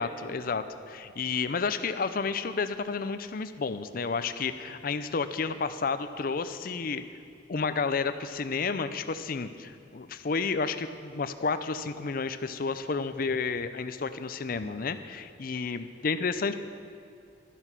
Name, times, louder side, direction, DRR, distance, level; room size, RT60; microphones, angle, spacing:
voice 1, 0.0-7.0 7.5-16.5, left 4 dB, 55° left, 11 dB, 0.5 m, -31 dB
12.0 x 11.0 x 6.0 m, 2.4 s
head